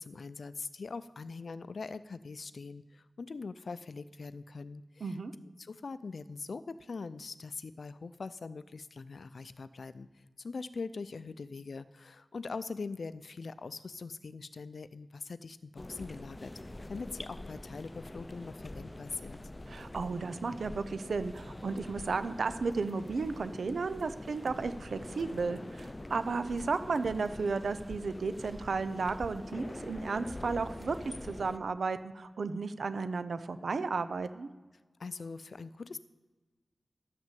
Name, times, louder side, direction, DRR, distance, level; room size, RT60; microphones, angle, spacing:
voice 1, 0.0-5.2 5.6-16.5 16.9-19.4 35.0-36.0, left 4 dB, 75° left, 15 dB, 0.4 m, -42 dB
voice 2, 5.0-5.3 19.7-31.0 31.2-34.5, right 4 dB, 90° right, 12 dB, 0.6 m, -34 dB
sound 1, 15.8-31.6, left 1 dB, 25° left, 0.5 m, -45 dB
11.5 x 6.2 x 7.5 m, 1.3 s
wide cardioid pair, 60°, 0 cm